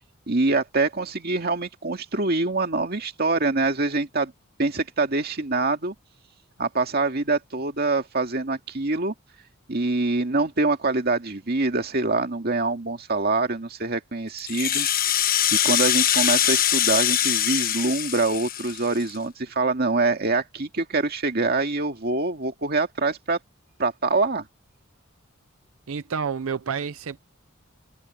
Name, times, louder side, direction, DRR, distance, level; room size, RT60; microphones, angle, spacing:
voice 1, 0.3-4.3 4.6-5.9 6.6-9.1 9.7-23.4 23.8-24.5, right 3 dB, 50° right, 2.1 m, -25 dB
Rattle (instrument), 14.4-19.2, left 10 dB, 45° left, 1.2 m, -23 dB
voice 2, 25.9-27.2, right 6 dB, 85° right, 0.6 m, -29 dB
head